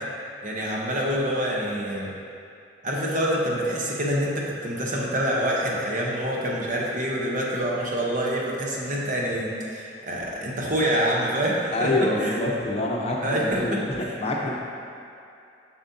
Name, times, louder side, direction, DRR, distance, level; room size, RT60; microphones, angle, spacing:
voice 1, 0.4-2.1 2.8-12.4 13.2-14.2, equal, 45° right, -3 dB, 1.0 m, -26 dB
voice 2, 11.7-14.5, left 2 dB, 35° left, -2 dB, 0.7 m, -26 dB
7.3 x 6.1 x 2.8 m, 2.6 s
head